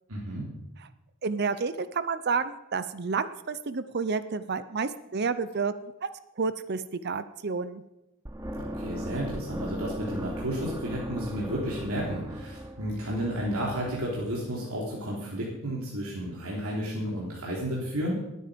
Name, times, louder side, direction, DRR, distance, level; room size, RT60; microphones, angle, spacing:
voice 1, 0.1-0.5 8.6-18.1, equal, 80° right, -5 dB, 3.4 m, -32 dB
voice 2, 1.2-6.1 6.4-7.8, right 5 dB, 50° right, 13 dB, 0.6 m, -30 dB
sound 1, 8.3-14.3, equal, 15° right, 1.2 m, -38 dB
19.5 x 9.4 x 5.1 m, 0.93 s
head